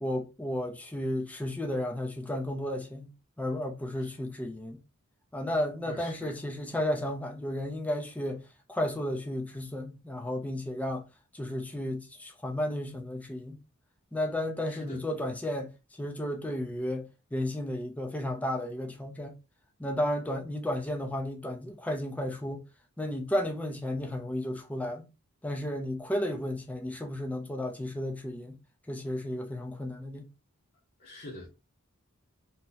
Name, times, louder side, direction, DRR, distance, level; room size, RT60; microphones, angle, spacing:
voice 1, 0.0-3.1 3.4-4.8 5.3-11.1 11.3-13.6 14.1-19.4 19.8-22.7 23.0-25.1 25.4-28.6 28.9-30.3, left 1 dB, 5° left, 0.4 m, -33 dB
voice 2, 5.8-6.4 14.7-15.0 31.0-31.5, left 2 dB, 40° left, 0.7 m, -45 dB
2.7 x 2.0 x 3.8 m
head